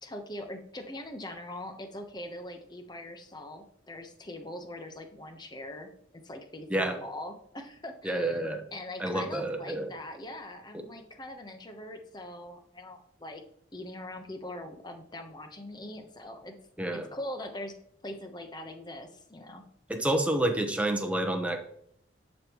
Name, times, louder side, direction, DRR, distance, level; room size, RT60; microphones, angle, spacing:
voice 1, 0.0-5.9 6.2-8.4 8.7-13.4 13.7-16.5 16.9-17.7 18.0-19.6, left 1 dB, 25° left, 5 dB, 1.0 m, -42 dB
voice 2, 8.0-8.6 9.0-9.9 10.7-10.9 16.8-17.1 19.9-21.6, right 1 dB, 5° right, 4 dB, 1.0 m, -29 dB
10.5 x 5.4 x 3.0 m, 0.67 s
head